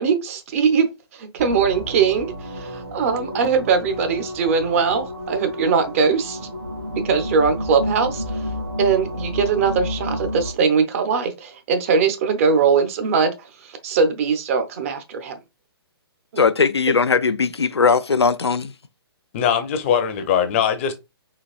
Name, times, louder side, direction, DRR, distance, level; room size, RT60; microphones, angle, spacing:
voice 1, 0.0-6.4 7.0-8.4 8.8-13.3 13.6-15.4 16.3-16.4, right 5 dB, 35° right, 0.6 m, -21 dB
sound 1, 1.4-10.5, left 1 dB, 75° right, 2.0 m, -31 dB
voice 2, 16.4-18.7, left 5 dB, 80° left, 0.4 m, -19 dB
voice 3, 19.3-20.9, left 8 dB, 30° left, 0.6 m, -21 dB
4.0 x 2.9 x 2.4 m
figure-of-eight pair, 130°, 14 cm